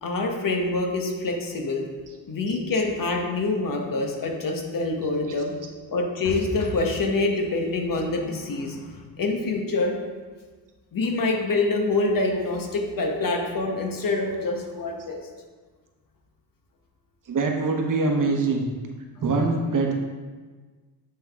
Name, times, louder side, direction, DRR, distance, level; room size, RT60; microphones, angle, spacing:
voice 1, 0.0-1.9 2.3-5.5 5.9-10.0 10.9-15.2, left 2 dB, 45° left, 2 dB, 1.2 m, -26 dB
voice 2, 17.3-18.7 19.2-19.9, right 3 dB, 40° right, 2 dB, 1.1 m, -23 dB
8.2 x 3.8 x 3.6 m, 1.4 s
cardioid pair, 85°, 46 cm